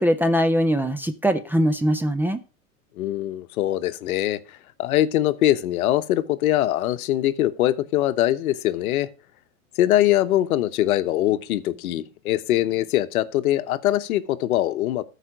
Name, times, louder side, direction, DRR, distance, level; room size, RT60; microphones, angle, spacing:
voice 1, 0.0-2.4, equal, 5° right, 0.6 m, -21 dB
voice 2, 3.0-9.1 9.8-15.0, left 13 dB, 70° left, 1.0 m, -22 dB
13.5 x 5.1 x 5.0 m
hypercardioid pair, 110°, 44 cm